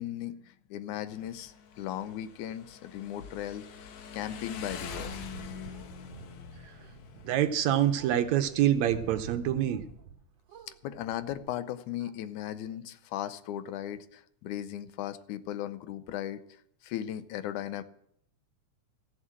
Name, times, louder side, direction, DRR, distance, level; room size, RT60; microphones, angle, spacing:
voice 1, 0.0-5.2 10.8-16.4 16.8-17.8, left 11 dB, 85° left, 12 dB, 2.1 m, -37 dB
Motorcycle, 1.1-9.3, left 7 dB, 70° left, 2.3 m, -46 dB
sound 1, 4.3-10.2 10.5-11.4, right 8 dB, 60° right, 2.0 m, -48 dB
voice 2, 7.3-9.8, right 11 dB, 75° right, 9 dB, 1.9 m, -26 dB
14.5 x 7.4 x 7.5 m, 0.72 s
omnidirectional pair, 3.5 m